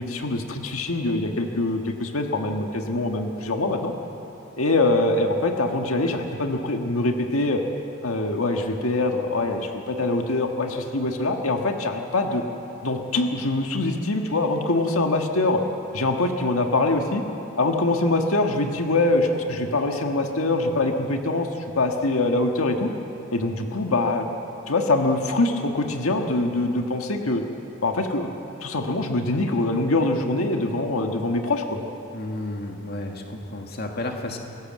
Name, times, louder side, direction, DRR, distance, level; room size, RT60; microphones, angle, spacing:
voice 1, 0.0-3.9 4.6-7.6 8.0-12.4 12.8-15.6 15.9-17.2 17.6-22.9 23.3-24.3 24.7-27.4 27.8-28.3 28.6-31.8, left 2 dB, 90° left, 3 dB, 1.6 m, -24 dB
voice 2, 32.1-34.4, left 1 dB, 50° left, 2 dB, 2.0 m, -32 dB
26.0 x 18.0 x 7.6 m, 3.0 s
head